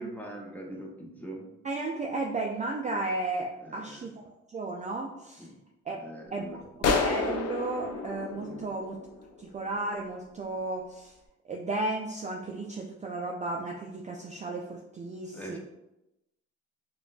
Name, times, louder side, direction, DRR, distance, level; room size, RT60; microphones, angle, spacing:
voice 1, 0.0-1.4 3.6-4.0 5.4-5.5 5.9-6.6 8.3-8.7 15.3-15.6, right 1 dB, 5° left, -1 dB, 0.7 m, -42 dB
voice 2, 1.6-4.1 4.5-5.5 5.9-6.0 6.3-6.5 6.8-9.0 9.4-11.1 11.5-15.6, right 2 dB, 25° right, 0 dB, 0.4 m, -34 dB
sound 1, 6.8-9.4, left 4 dB, 55° left, 0.5 m, -30 dB
5.0 x 2.3 x 2.4 m, 0.92 s
cardioid pair, 90°, 30 cm